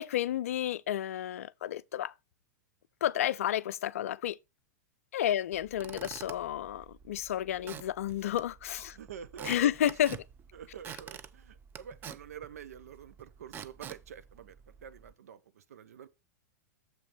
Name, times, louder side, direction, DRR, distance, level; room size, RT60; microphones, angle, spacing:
voice 1, 0.0-2.1 3.0-4.4 5.1-9.0 9.4-10.2, left 11 dB, 55° left, 0.5 m, -31 dB
Squeak / Wood, 5.5-15.1, right 8 dB, 20° right, 0.6 m, -48 dB
voice 2, 8.8-9.7 10.5-16.1, right 8 dB, 60° right, 0.9 m, -48 dB
7.5 x 5.8 x 4.1 m
figure-of-eight pair, 100°, 9 cm